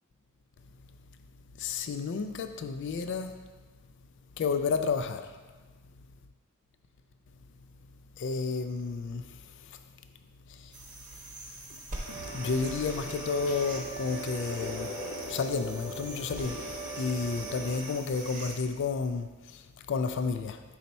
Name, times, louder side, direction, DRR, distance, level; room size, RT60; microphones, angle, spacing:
voice 1, 1.6-3.4 4.4-5.4 8.2-9.8 10.5-10.7 11.7-11.8 12.3-14.9 15.3-20.6, left 5 dB, 55° left, 8 dB, 0.3 m, -32 dB
sound 1, 10.7-18.6, right 2 dB, 35° right, 0.9 m, -43 dB
sound 2, 12.0-17.8, right 1 dB, 75° left, 0.9 m, -40 dB
5.6 x 4.1 x 4.1 m, 1.3 s
head